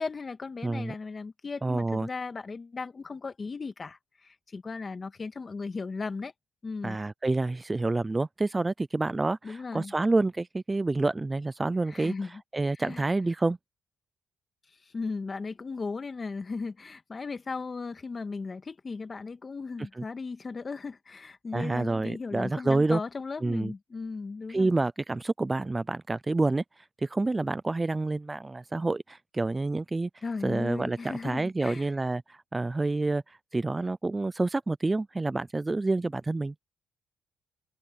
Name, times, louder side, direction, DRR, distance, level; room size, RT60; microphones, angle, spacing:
voice 1, 0.0-6.3 6.6-7.0 9.4-9.9 11.9-12.4 12.7-13.0 14.9-24.7 30.2-31.9, left 4 dB, 30° left, 1.7 m, -36 dB
voice 2, 0.6-0.9 1.6-2.1 6.8-12.1 12.5-13.6 20.0-20.1 21.5-23.0 23.4-23.7 24.5-30.1 30.4-36.5, right 2 dB, 20° right, 0.4 m, -28 dB
open air
cardioid pair, 90°, 0 cm